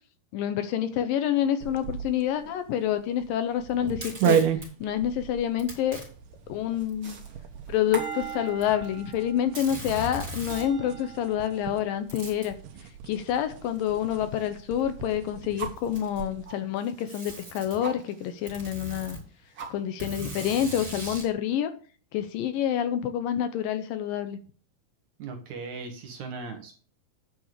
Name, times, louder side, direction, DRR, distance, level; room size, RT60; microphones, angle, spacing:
voice 1, 0.3-4.4 4.8-6.0 6.5-7.2 7.7-12.6 13.0-19.2 19.7-21.7 22.1-24.4, left 10 dB, 75° left, 10 dB, 2.3 m, -28 dB
sound 1, 1.6-16.5, right 9 dB, 90° right, 2.9 m, -34 dB
Packing tape duct tape, 3.9-4.7 5.6-6.1 6.9-7.0 8.0-8.9 9.1-9.2 9.6-10.7 12.1-12.5 13.8-13.9 14.8-14.9 15.7-16.3 17.1-17.8 18.5-19.2 20.0-21.3, equal, 25° right, 4.9 m, -39 dB
sound 2, 6.0-14.5 14.8-15.9 16.5-18.5 18.8-18.9 19.2-20.1, right 6 dB, 40° right, 2.2 m, -42 dB
voice 2, 25.2-26.7, right 4 dB, 60° right, 3 dB, 2.3 m, -38 dB
9.6 x 5.8 x 6.6 m, 0.41 s
omnidirectional pair, 4.4 m